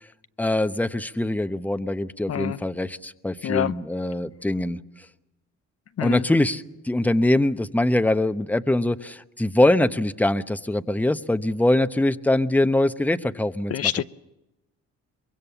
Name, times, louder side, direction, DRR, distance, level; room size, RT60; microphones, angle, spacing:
voice 1, 0.4-4.8 6.0-13.8, left 1 dB, 5° left, 0.9 m, -23 dB
voice 2, 2.3-2.6 3.4-3.7 6.0-6.3 13.7-14.0, left 10 dB, 50° left, 0.7 m, -26 dB
24.5 x 22.0 x 7.0 m
cardioid pair, 90°, 30 cm